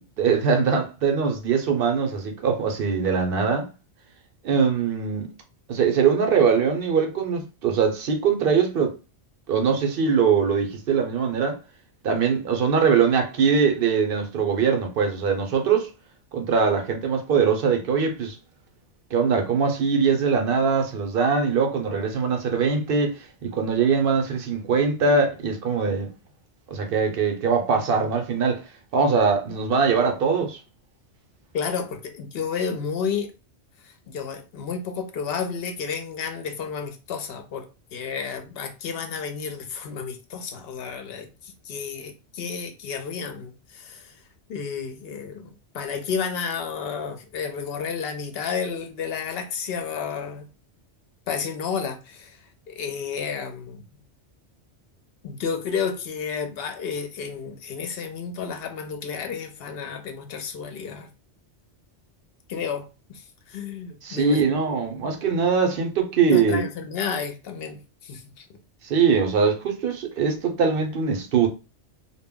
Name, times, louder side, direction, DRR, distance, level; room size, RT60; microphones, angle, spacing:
voice 1, 0.2-3.7 4.4-5.3 5.7-8.9 9.5-11.6 12.0-15.9 16.3-18.4 19.1-26.1 26.7-28.6 28.9-30.6 64.0-66.6 68.8-71.5, right 5 dB, 60° right, 0.7 m, -22 dB
voice 2, 31.5-33.3 33.8-44.1 44.5-45.5 45.7-50.5 51.3-52.4 52.7-53.9 55.2-61.1 62.5-64.6 66.2-68.5, left 6 dB, 65° left, 0.7 m, -31 dB
2.2 x 2.1 x 3.5 m
omnidirectional pair, 1.2 m